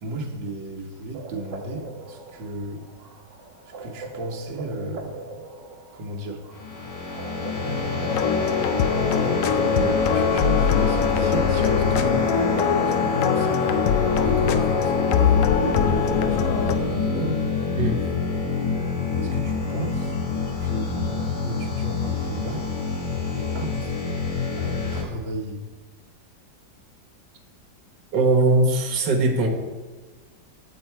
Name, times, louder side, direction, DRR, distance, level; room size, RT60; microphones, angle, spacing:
voice 1, 0.0-2.9 3.8-5.2 5.9-6.4 7.6-8.6 9.1-17.5 19.2-20.1 20.6-22.7 23.3-24.0 24.6-25.7, right 1 dB, 85° right, -1 dB, 1.8 m, -34 dB
sound 1, 1.1-11.5, right 2 dB, 50° right, 1.0 m, -41 dB
sound 2, 6.5-25.0, left 4 dB, 70° left, 1.8 m, -26 dB
sound 3, 8.1-16.8, left 8 dB, 85° left, 0.7 m, -22 dB
voice 2, 28.1-29.5, right 2 dB, 70° right, 2 dB, 1.7 m, -20 dB
7.9 x 7.9 x 4.5 m, 1.3 s
omnidirectional pair, 2.0 m